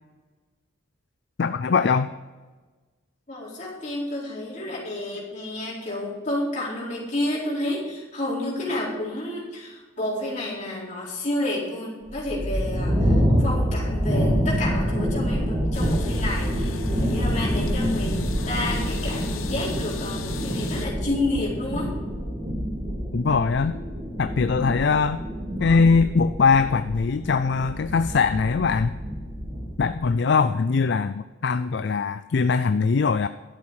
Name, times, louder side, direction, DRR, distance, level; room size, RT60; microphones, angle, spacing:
voice 1, 1.4-2.1 23.1-23.7 24.2-25.2 25.6-29.0 29.8-33.3, left 5 dB, 55° left, 12 dB, 0.4 m, -21 dB
voice 2, 3.3-21.9, left 1 dB, 35° left, -5 dB, 4.2 m, -30 dB
sound 1, 12.0-30.1, equal, 20° right, 3.1 m, -27 dB
sound 2, 15.7-20.9, left 4 dB, 90° left, 1.0 m, -37 dB
12.0 x 7.4 x 6.3 m, 1.3 s
head